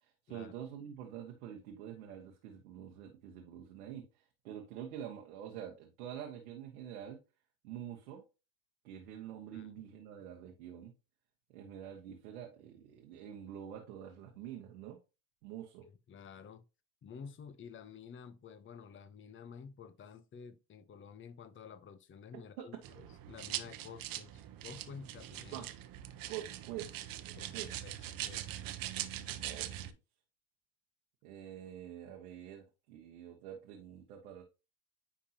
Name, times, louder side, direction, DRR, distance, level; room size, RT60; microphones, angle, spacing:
voice 1, 0.0-7.2 7.6-8.2 8.8-10.9 11.5-15.0 15.4-15.8 22.6-22.7 25.5-25.7 26.3-27.0 27.2-27.7 29.4-29.9 31.2-34.4, right 10 dB, 90° right, 1.2 m, -46 dB
voice 2, 15.8-16.6 17.0-25.6 27.4-27.5 27.8-28.6, left 6 dB, 30° left, 0.8 m, -51 dB
sound 1, 22.8-29.9, right 12 dB, 55° right, 0.9 m, -42 dB
9.8 x 3.7 x 2.8 m
supercardioid pair, 80°, 42 cm